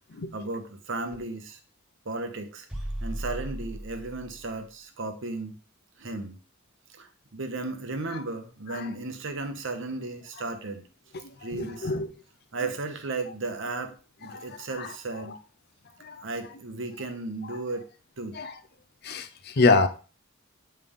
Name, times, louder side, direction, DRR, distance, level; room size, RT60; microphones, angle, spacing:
voice 1, 0.3-1.6 2.0-2.7 3.0-5.6 6.0-6.4 7.0-10.8 11.4-11.9 12.5-13.9 14.2-15.4 16.2-17.9 18.2-18.4, right 3 dB, 60° right, 0.9 m, -35 dB
sound 1, 2.7-4.5, right 1 dB, 5° right, 1.0 m, -36 dB
voice 2, 11.1-12.1 14.2-14.9 15.3-15.4 16.0-16.2 17.4-17.6 18.3-18.6 19.0-19.9, left 3 dB, 50° left, 0.6 m, -27 dB
8.5 x 3.3 x 3.6 m
head